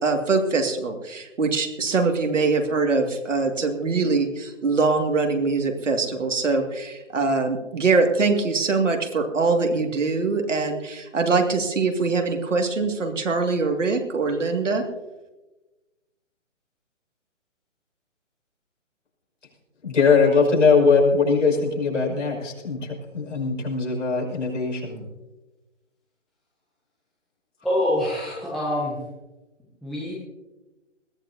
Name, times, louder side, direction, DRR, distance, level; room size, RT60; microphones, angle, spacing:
voice 1, 0.0-14.8, right 4 dB, 75° right, 4 dB, 2.4 m, -23 dB
voice 2, 19.8-22.9 23.1-25.0, left 4 dB, 75° left, -1 dB, 6.0 m, -20 dB
voice 3, 27.6-29.0 29.8-30.1, left 1 dB, ahead, -6 dB, 0.5 m, -25 dB
21.0 x 15.0 x 2.8 m, 1.1 s
figure-of-eight pair, 145°, 37 cm